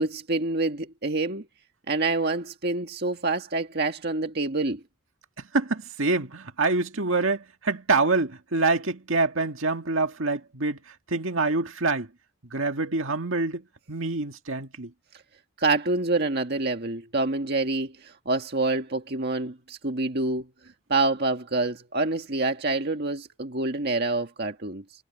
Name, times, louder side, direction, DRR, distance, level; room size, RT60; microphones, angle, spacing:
voice 1, 0.0-1.4 1.9-4.8 15.6-20.5 20.9-24.8, right 2 dB, 50° right, 1.7 m, -27 dB
voice 2, 5.4-12.1 12.5-14.9, right 3 dB, 65° right, 2.0 m, -26 dB
head